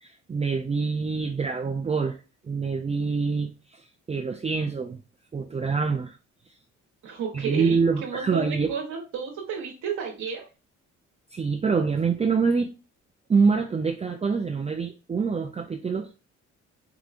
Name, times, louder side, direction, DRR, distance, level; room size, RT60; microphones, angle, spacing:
voice 1, 0.0-2.2 2.4-3.8 4.1-5.0 5.3-6.1 7.3-8.7 11.3-12.7 13.3-16.1, right 5 dB, 20° right, 0.5 m, -25 dB
voice 2, 7.0-10.4, right 7 dB, 75° right, 1.1 m, -32 dB
4.8 x 2.9 x 2.5 m
cardioid pair, 90°, 30 cm